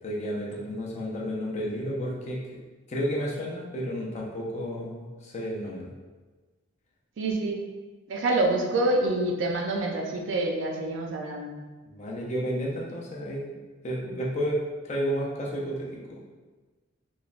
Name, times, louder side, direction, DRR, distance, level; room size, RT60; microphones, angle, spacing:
voice 1, 0.0-2.4 2.9-5.9 11.9-13.4 13.8-14.6 14.8-16.3, equal, 35° left, -3 dB, 0.4 m, -31 dB
voice 2, 7.2-7.6 8.1-11.5, right 2 dB, 65° right, 1 dB, 0.4 m, -26 dB
3.1 x 2.1 x 2.4 m, 1.3 s
head